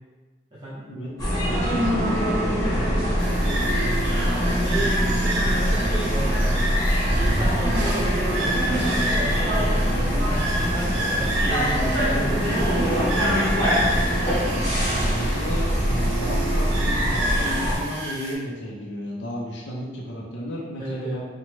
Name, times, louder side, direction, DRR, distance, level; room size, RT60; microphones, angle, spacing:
voice 1, 0.5-0.8 4.4-5.0 5.5-6.6 7.1-14.5 20.8-21.2, right 1 dB, 25° right, -10 dB, 0.6 m, -34 dB
sound 1, 1.2-17.8, equal, 20° left, 0.8 m, -23 dB
voice 2, 1.4-3.0 14.9-21.2, equal, 70° left, -3 dB, 0.5 m, -32 dB
sound 2, 3.2-18.3, right 1 dB, 85° right, 0.6 m, -30 dB
3.0 x 2.1 x 3.1 m, 1.3 s
head